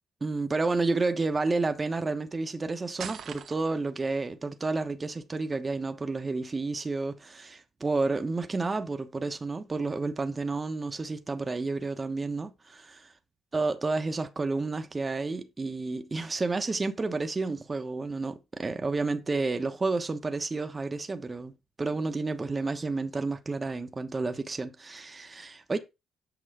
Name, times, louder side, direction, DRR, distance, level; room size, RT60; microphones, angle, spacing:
voice 1, 0.2-13.1 13.5-25.8, right 3 dB, 25° right, 1.1 m, -30 dB
sound 1, 3.0-3.9, right 8 dB, 65° right, 1.0 m, -40 dB
8.1 x 6.0 x 4.9 m
cardioid pair, 90°, 0 cm